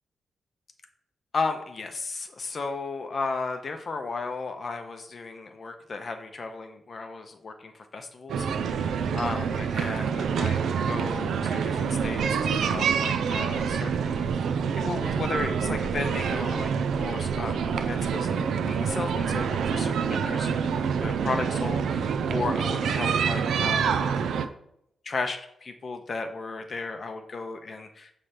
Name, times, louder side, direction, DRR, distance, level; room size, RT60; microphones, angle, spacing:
voice 1, 1.3-24.1 24.4-24.5 25.0-28.1, left 4 dB, 40° left, 6 dB, 0.6 m, -35 dB
sound 1, 8.3-24.5, right 6 dB, 85° right, 0.4 m, -27 dB
6.6 x 3.2 x 5.7 m, 0.76 s
wide cardioid pair, 150°, 0 cm